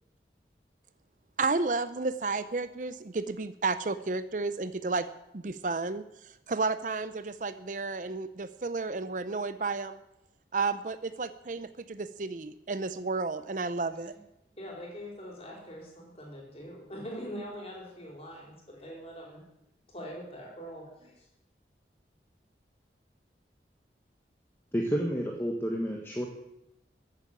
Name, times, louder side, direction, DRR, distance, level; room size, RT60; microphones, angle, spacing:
voice 1, 1.4-5.1 5.3-6.0 6.5-10.0 10.5-14.2, right 3 dB, 45° right, 13 dB, 0.6 m, -32 dB
voice 2, 14.6-19.4 19.9-21.3, equal, 35° left, -1 dB, 4.7 m, -43 dB
voice 3, 24.7-26.3, equal, 15° left, 0 dB, 1.4 m, -30 dB
14.0 x 8.4 x 8.8 m, 0.86 s
head